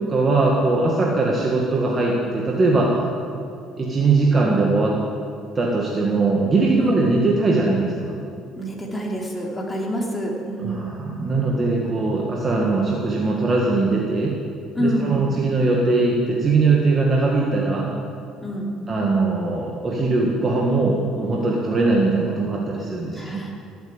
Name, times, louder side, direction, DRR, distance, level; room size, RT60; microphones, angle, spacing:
voice 1, 0.0-2.9 3.8-5.0 5.6-8.2 10.6-14.3 14.8-17.9 18.9-23.4, right 3 dB, 30° right, -2 dB, 1.9 m, -20 dB
voice 2, 8.6-11.0 14.7-15.2 18.4-18.7 23.2-23.5, equal, 10° left, -2 dB, 3.1 m, -27 dB
17.5 x 8.1 x 8.9 m, 2.4 s
cardioid pair, 125°, 0 cm